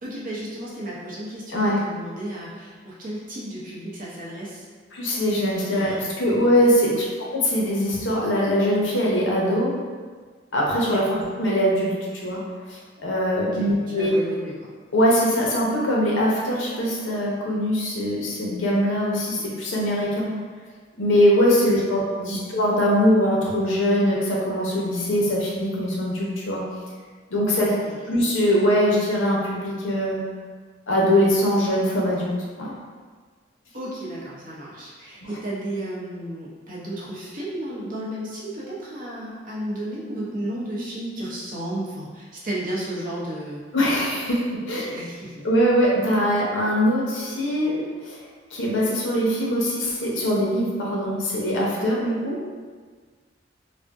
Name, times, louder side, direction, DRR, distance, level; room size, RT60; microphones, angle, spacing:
voice 1, 0.0-4.7 5.6-6.3 6.9-7.1 10.9-11.0 13.4-14.7 21.7-21.9 22.2-22.6 27.6-28.0 33.7-43.6 44.7-45.4, right 1 dB, 45° right, -6 dB, 0.7 m, -33 dB
voice 2, 4.9-7.1 7.3-9.7 10.5-11.9 12.2-12.4 12.7-14.1 14.9-20.3 21.0-26.6 27.3-27.7 28.1-30.2 30.9-32.3 32.6-32.7 35.2-35.3 43.7-45.0 45.4-48.2 48.5-52.4, equal, 70° left, -4 dB, 0.7 m, -22 dB
2.6 x 2.0 x 3.4 m, 1.6 s
head